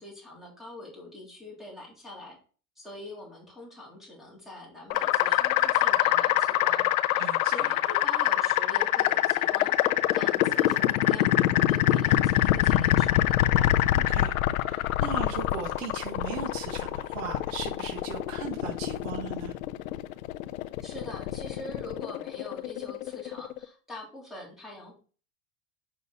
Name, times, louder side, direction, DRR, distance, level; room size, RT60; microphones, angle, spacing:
voice 1, 0.0-2.4 2.8-9.7 10.1-13.7 20.8-25.0, left 2 dB, ahead, -3 dB, 3.5 m, -44 dB
sound 1, 4.9-23.7, left 14 dB, 80° left, 0.8 m, -25 dB
voice 2, 7.2-7.7 13.9-14.4 14.7-19.6, right 7 dB, 70° right, 1 dB, 1.7 m, -38 dB
6.8 x 6.3 x 4.1 m, 0.38 s
supercardioid pair, 135°, 40 cm